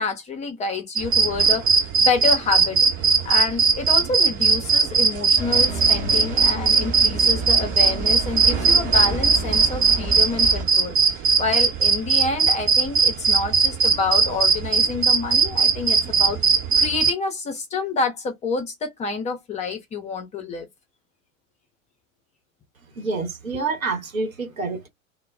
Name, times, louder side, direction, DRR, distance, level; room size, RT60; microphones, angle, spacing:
voice 1, 0.0-20.7, left 4 dB, 15° left, 0.5 m, -28 dB
sound 1, 1.0-17.1, right 5 dB, 55° right, 1.0 m, -18 dB
sound 2, 5.4-10.7, right 1 dB, 20° right, 0.7 m, -30 dB
voice 2, 22.9-24.9, right 4 dB, 75° right, 1.0 m, -27 dB
2.2 x 2.1 x 3.2 m
figure-of-eight pair, 85°, 41 cm